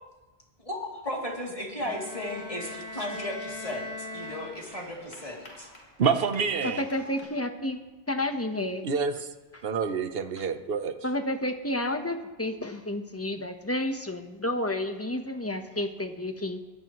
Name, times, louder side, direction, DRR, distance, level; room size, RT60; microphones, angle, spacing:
voice 1, 0.7-5.7, left 1 dB, 30° left, -2 dB, 3.1 m, -35 dB
Bowed string instrument, 1.8-5.0, left 2 dB, 35° right, 7.0 m, -40 dB
sound 1, 2.2-7.2, left 1 dB, 80° left, 4.8 m, -51 dB
voice 2, 6.0-6.8 8.8-9.3 9.6-11.0, right 5 dB, 60° right, 9 dB, 1.1 m, -27 dB
voice 3, 6.6-7.8 8.1-8.9 11.0-16.6, left 1 dB, 15° left, 6 dB, 1.1 m, -30 dB
23.5 x 19.0 x 3.1 m, 1.2 s
omnidirectional pair, 1.1 m